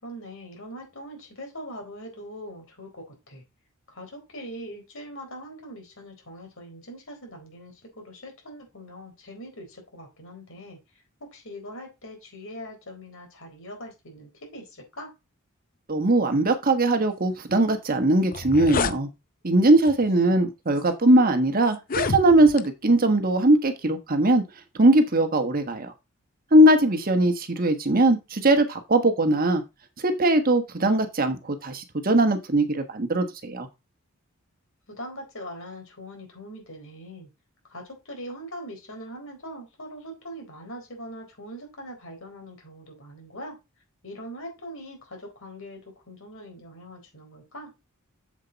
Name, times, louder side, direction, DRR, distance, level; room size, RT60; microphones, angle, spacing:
voice 1, 0.0-3.4 3.9-10.8 11.2-15.1 34.9-37.3 37.7-43.6 44.0-47.7, equal, 65° left, 3 dB, 4.1 m, -41 dB
voice 2, 15.9-19.1 19.4-24.4 24.8-25.9 26.5-29.6 30.0-33.7, right 1 dB, 40° right, 7 dB, 1.2 m, -20 dB
sound 1, 17.9-18.0 18.2-19.0 19.8-20.1 20.8-20.9 21.7-22.7, left 5 dB, 40° left, 0.6 m, -28 dB
7.5 x 7.4 x 4.0 m, 0.25 s
head